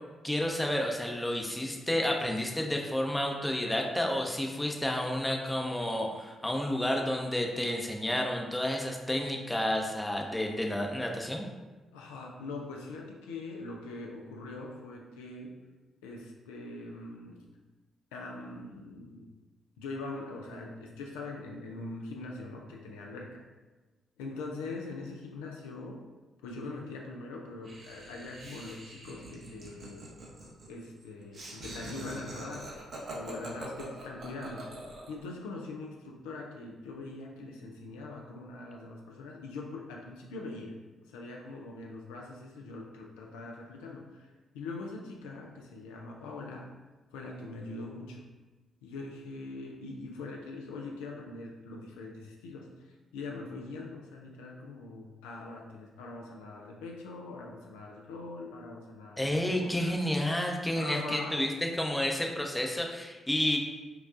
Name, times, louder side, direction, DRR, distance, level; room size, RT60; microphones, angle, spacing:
voice 1, 0.2-11.5 59.2-63.6, left 1 dB, 10° left, 1 dB, 0.6 m, -30 dB
voice 2, 11.9-15.6 16.0-17.4 18.1-19.3 19.8-23.4 24.2-26.0 26.4-30.1 30.7-32.7 33.1-34.7 35.1-40.7 41.1-46.7 47.1-48.3 48.8-60.0 60.7-61.5, left 3 dB, 80° left, 0 dB, 0.3 m, -42 dB
Laughter, 27.6-35.2, right 2 dB, 55° right, 0.8 m, -44 dB
4.7 x 2.3 x 2.5 m, 1.2 s
hypercardioid pair, 40°, 0 cm